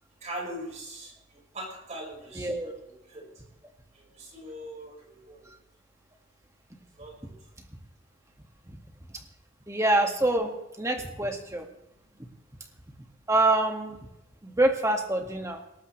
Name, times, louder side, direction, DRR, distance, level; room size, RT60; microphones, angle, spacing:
voice 1, 0.2-3.3 3.9-5.5 7.0-7.2, right 1 dB, 35° right, -1 dB, 5.1 m, -41 dB
voice 2, 2.4-2.7 8.7-8.8 9.7-11.7 13.3-14.0 14.4-15.6, right 2 dB, 15° right, 3 dB, 1.9 m, -26 dB
19.0 x 17.5 x 3.3 m, 0.90 s
head